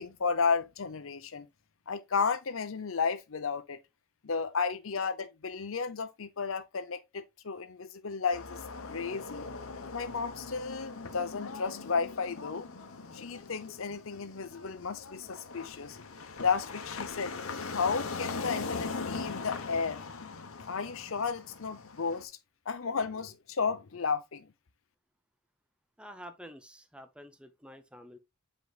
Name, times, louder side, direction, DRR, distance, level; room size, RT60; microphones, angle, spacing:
voice 1, 0.0-1.5 1.9-3.8 4.2-8.6 8.9-9.5 9.9-12.7 13.1-16.1 16.4-17.3 17.7-20.0 20.7-22.3 22.7-24.5, left 5 dB, 70° left, 0.7 m, -33 dB
sound 1, 8.3-22.2, left 4 dB, 85° left, 1.1 m, -41 dB
voice 2, 26.0-28.2, equal, 5° right, 0.6 m, -49 dB
7.7 x 5.3 x 2.4 m
head